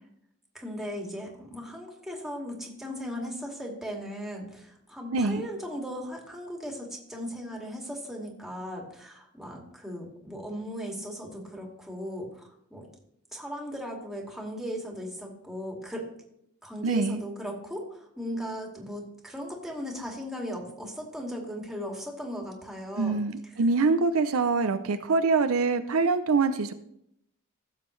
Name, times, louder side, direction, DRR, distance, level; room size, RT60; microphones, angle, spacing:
voice 1, 0.5-12.9 13.3-16.1 16.6-23.5, equal, ahead, -1 dB, 2.2 m, -37 dB
voice 2, 5.1-5.5 16.8-17.2 23.0-26.7, right 4 dB, 70° right, 9 dB, 0.6 m, -24 dB
15.5 x 7.5 x 3.2 m, 0.75 s
head